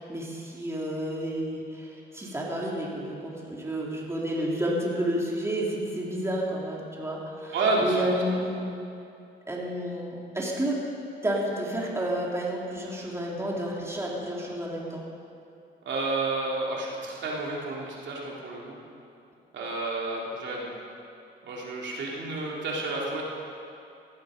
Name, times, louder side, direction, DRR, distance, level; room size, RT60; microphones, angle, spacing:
voice 1, 0.0-8.7 9.5-10.8 11.2-15.0, right 1 dB, 15° right, -4 dB, 3.5 m, -31 dB
voice 2, 7.5-8.2 15.8-18.8 19.5-20.7 21.4-23.2, right 2 dB, 65° right, -3 dB, 3.5 m, -30 dB
18.5 x 14.5 x 5.3 m, 2.6 s
cardioid pair, 90°, 20 cm